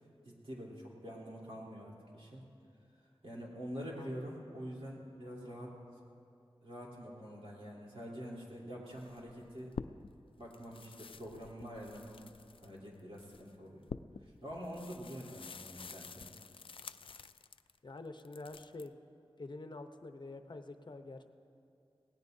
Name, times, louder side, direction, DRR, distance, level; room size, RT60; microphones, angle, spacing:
voice 1, 0.2-2.4 3.2-5.8 6.6-9.7 10.4-12.2 12.6-13.8 14.2-16.3, equal, 80° right, -4 dB, 3.3 m, -46 dB
sound 1, 8.9-10.2 10.5-17.8 18.2-18.9, left 5 dB, 70° left, 0.3 m, -49 dB
voice 2, 17.8-19.0 19.4-21.3, left 2 dB, 50° left, 7 dB, 0.7 m, -47 dB
24.0 x 17.5 x 2.7 m, 2.5 s
wide cardioid pair, 70°, 10 cm